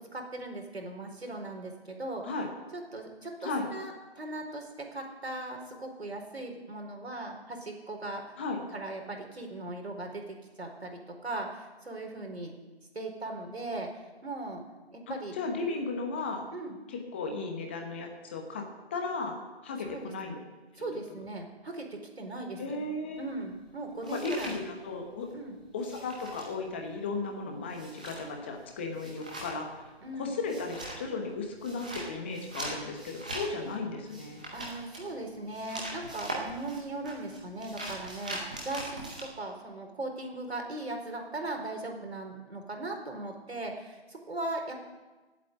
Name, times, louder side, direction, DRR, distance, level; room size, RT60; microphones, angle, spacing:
voice 1, 0.1-2.3 2.7-8.3 8.7-10.2 10.6-12.5 12.9-14.6 14.9-15.3 16.5-16.8 19.8-20.4 20.8-22.8 23.2-24.6 25.3-25.6 30.0-30.3 34.5-44.9, right 2 dB, 75° right, 2 dB, 4.3 m, -38 dB
voice 2, 15.1-16.4 16.9-18.7 18.9-20.4 20.8-21.0 22.6-23.3 24.0-25.3 25.7-29.8 30.2-34.4, left 3 dB, 10° left, 3 dB, 1.0 m, -35 dB
sound 1, 23.2-25.3 25.6-39.2, right 1 dB, 5° right, 0.6 m, -42 dB
16.5 x 8.5 x 8.1 m, 1.2 s
figure-of-eight pair, 160°, 32 cm